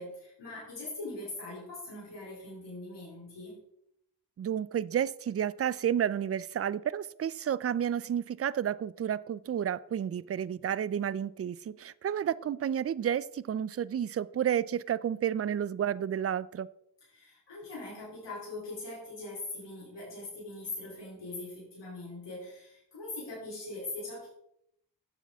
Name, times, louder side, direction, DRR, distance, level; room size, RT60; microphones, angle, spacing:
voice 1, 0.0-3.6 17.1-24.3, left 2 dB, 85° left, -7 dB, 3.3 m, -41 dB
voice 2, 4.4-16.7, right 9 dB, 35° right, 19 dB, 0.4 m, -31 dB
9.6 x 7.3 x 3.5 m, 0.75 s
cardioid pair, 50°, 42 cm